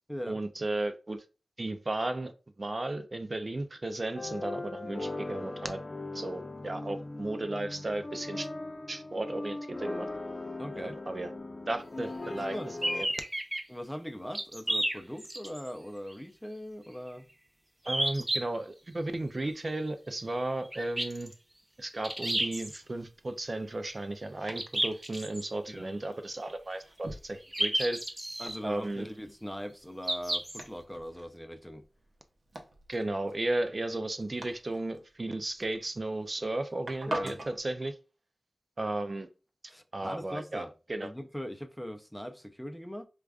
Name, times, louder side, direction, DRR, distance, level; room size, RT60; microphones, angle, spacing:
voice 1, 0.3-1.2 1.6-2.3 2.6-5.8 6.1-8.5 8.9-10.1 10.8-11.3 11.7-12.6 12.9-13.1 17.9-21.3 21.8-28.0 28.6-29.1 32.9-37.9 38.8-39.3 39.9-41.1, right 2 dB, 50° right, 0.4 m, -34 dB
sound 1, 4.1-13.0, left 2 dB, 45° left, 0.6 m, -39 dB
voice 2, 10.6-11.0 12.3-12.8 13.7-17.3 25.7-25.9 28.4-31.8 37.1-37.4 39.7-40.7 41.0-43.1, equal, 5° left, 0.5 m, -40 dB
sound 2, 12.8-13.6 14.3-15.7 16.1-16.2 17.9-18.4 20.7-21.3 22.0-22.8 24.6-25.4 27.5-28.6 30.0-30.6, right 1 dB, 25° right, 0.8 m, -31 dB
Domestic sounds home sounds, 22.0-37.6, right 1 dB, 75° right, 0.7 m, -47 dB
4.8 x 2.3 x 2.4 m
wide cardioid pair, 60°, 0 cm